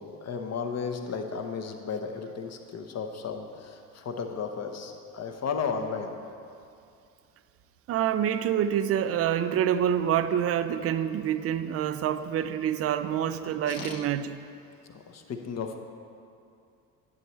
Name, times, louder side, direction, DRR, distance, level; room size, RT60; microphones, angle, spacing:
voice 1, 0.0-6.1 13.6-14.0 14.9-15.8, left 5 dB, 35° left, 5 dB, 0.9 m, -34 dB
voice 2, 7.9-14.4, right 9 dB, 35° right, 11 dB, 0.4 m, -27 dB
10.5 x 7.6 x 3.2 m, 2.5 s
figure-of-eight pair, 50°, 44 cm